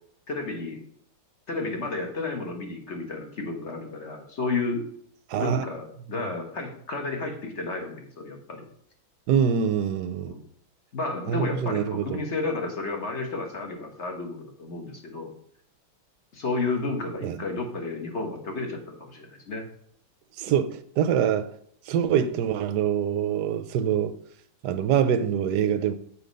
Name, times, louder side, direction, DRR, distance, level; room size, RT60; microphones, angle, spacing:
voice 1, 0.3-0.8 1.5-4.8 5.4-8.6 10.1-10.4 10.9-15.3 16.3-19.6 20.5-20.6, left 3 dB, 40° left, 1.3 m, -32 dB
voice 2, 5.3-5.6 9.3-10.3 11.3-12.2 17.2-17.4 20.4-21.5 21.9-24.1 24.6-25.9, right 8 dB, 70° right, 1.0 m, -24 dB
7.2 x 5.0 x 5.2 m
omnidirectional pair, 2.2 m